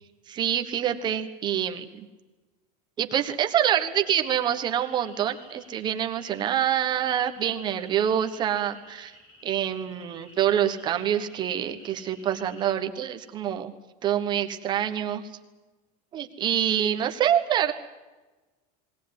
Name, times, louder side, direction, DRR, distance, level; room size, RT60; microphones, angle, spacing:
voice 1, 0.3-2.1 3.0-9.1 9.4-13.7 14.0-15.2 16.1-17.7, right 10 dB, 20° right, 6 dB, 1.3 m, -26 dB
sound 1, 3.9-12.8, equal, 30° left, 4.7 m, -52 dB
20.5 x 18.0 x 9.6 m, 1.2 s
supercardioid pair, 180°, 19 cm